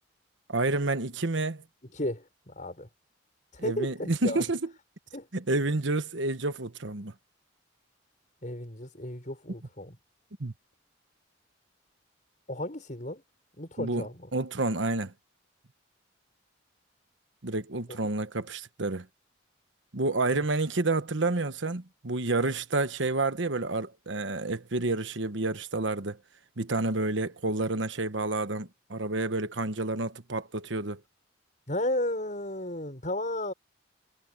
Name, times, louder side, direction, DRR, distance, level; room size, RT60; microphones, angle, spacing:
voice 1, 0.5-1.6 3.6-4.7 5.3-7.1 10.4-10.5 13.8-15.1 17.4-19.1 19.9-26.2 26.6-31.0, right 2 dB, 70° right, 1.2 m, -29 dB
voice 2, 1.9-2.9 3.6-4.4 5.1-5.3 8.4-10.0 12.5-13.2 13.6-14.3 20.3-20.4 31.7-33.5, left 1 dB, 40° left, 6.4 m, -33 dB
head